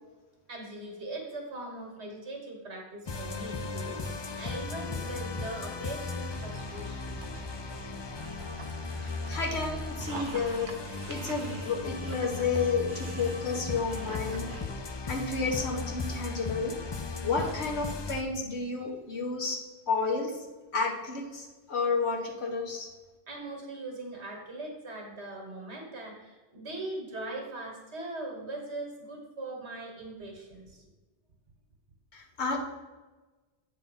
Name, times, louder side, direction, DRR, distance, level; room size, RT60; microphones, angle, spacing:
voice 1, 0.5-7.2 23.3-30.8, right 2 dB, 80° right, 0 dB, 1.8 m, -40 dB
sound 1, 3.1-18.2, left 3 dB, 45° left, 0.3 m, -37 dB
Dog, 6.1-14.7, right 4 dB, 55° right, 0.9 m, -45 dB
voice 2, 8.9-10.7 11.1-14.5 15.1-16.8 17.2-20.5 20.7-22.9 32.1-32.6, left 4 dB, 80° left, 0 dB, 1.5 m, -31 dB
8.1 x 4.2 x 5.5 m, 1.2 s
omnidirectional pair, 1.1 m